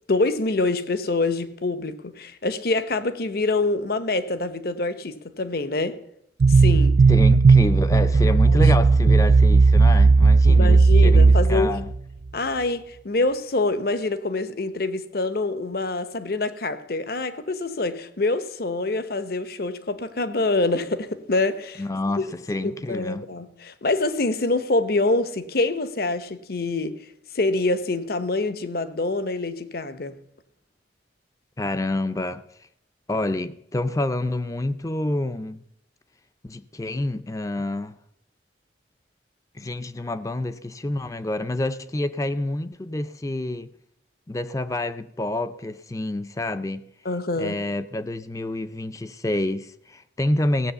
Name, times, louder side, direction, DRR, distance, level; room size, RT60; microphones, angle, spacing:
voice 1, 0.1-6.0 6.5-7.0 8.5-8.6 9.0-9.2 10.5-11.8 12.3-21.8 22.2-22.3 22.9-27.0 27.3-30.2 47.0-47.6, left 2 dB, 55° left, 0.9 m, -25 dB
sound 1, 6.4-12.0, right 4 dB, 50° right, 0.4 m, -15 dB
voice 2, 7.1-11.9 21.8-23.2 31.6-32.4 33.1-35.6 36.4-38.0 39.5-43.7 44.3-46.9 47.4-50.7, left 1 dB, 20° left, 0.4 m, -28 dB
16.5 x 7.7 x 6.8 m
head